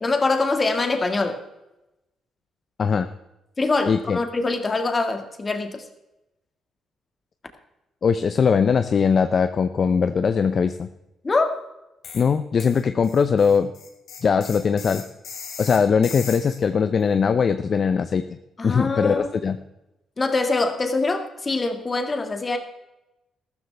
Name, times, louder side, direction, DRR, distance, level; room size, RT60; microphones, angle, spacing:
voice 1, 0.0-1.4 3.6-5.8 11.2-11.6 18.6-19.3 20.2-22.6, left 3 dB, 30° left, 5 dB, 1.9 m, -24 dB
voice 2, 3.9-4.2 8.0-10.9 12.1-13.7 14.2-15.0 15.6-18.2 18.6-19.6, left 6 dB, 45° left, 10 dB, 0.6 m, -20 dB
sound 1, 12.0-12.3 12.6-16.6, left 6 dB, 70° left, 3.2 m, -38 dB
14.0 x 13.0 x 3.4 m, 0.94 s
cardioid pair, 90°, 0 cm